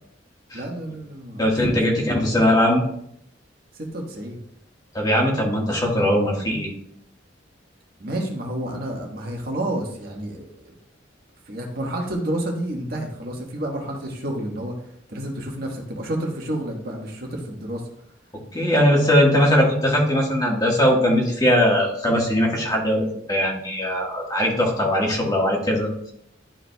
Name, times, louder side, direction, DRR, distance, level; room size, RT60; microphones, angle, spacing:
voice 1, 0.5-1.8 3.7-4.4 8.0-10.7 11.5-14.7 15.1-17.8, right 1 dB, 55° right, 0 dB, 1.4 m, -30 dB
voice 2, 1.4-2.9 4.9-6.7 18.5-26.1, equal, 20° left, -1 dB, 1.5 m, -20 dB
11.5 x 4.9 x 2.3 m, 0.72 s
head